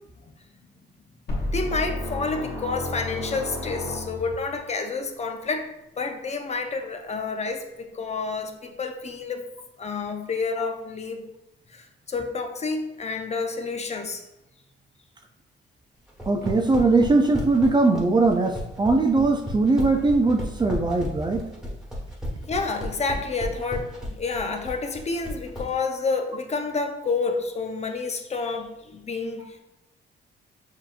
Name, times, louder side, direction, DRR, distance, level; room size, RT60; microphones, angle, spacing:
sound 1, 1.3-4.5, left 1 dB, 50° left, 1.4 m, -31 dB
voice 1, 1.5-5.7 6.0-9.5 9.8-11.2 11.7-14.3 22.4-29.6, left 4 dB, 35° left, 5 dB, 0.6 m, -29 dB
sound 2, 16.1-25.7, left 1 dB, 5° right, 1.3 m, -33 dB
voice 2, 16.3-21.4, right 3 dB, 20° right, 4 dB, 0.4 m, -20 dB
6.7 x 2.9 x 2.5 m, 0.91 s
cardioid pair, 90°, 20 cm